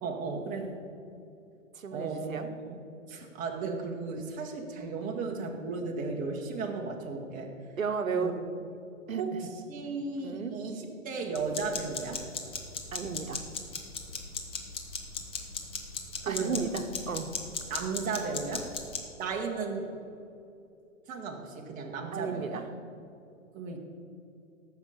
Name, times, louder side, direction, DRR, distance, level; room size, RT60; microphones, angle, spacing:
voice 1, 0.0-0.8 1.9-2.8 3.1-7.5 8.1-8.3 9.2-9.4 9.7-12.2 16.2-16.7 17.7-18.7 19.2-19.9 21.1-22.6 23.5-23.8, right 4 dB, 20° right, 0 dB, 1.5 m, -35 dB
voice 2, 1.7-2.5 5.0-5.2 7.8-8.4 9.1-9.5 10.2-10.5 12.9-13.4 16.3-17.3 22.1-22.6, right 5 dB, 80° right, 7 dB, 1.1 m, -33 dB
sound 1, 11.4-19.0, left 4 dB, 15° left, 0.9 m, -38 dB
14.0 x 5.9 x 7.0 m, 2.6 s
hypercardioid pair, 125°, 40 cm